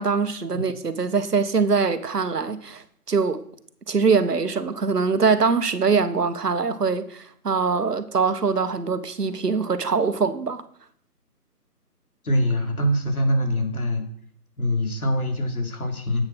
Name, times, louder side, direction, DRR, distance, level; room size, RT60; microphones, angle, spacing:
voice 1, 0.0-3.4 3.9-10.6, right 5 dB, 80° right, 1.4 m, -23 dB
voice 2, 12.2-14.0 14.6-16.2, equal, 65° left, 3.6 m, -23 dB
11.0 x 8.8 x 6.2 m
figure-of-eight pair, 175°, 47 cm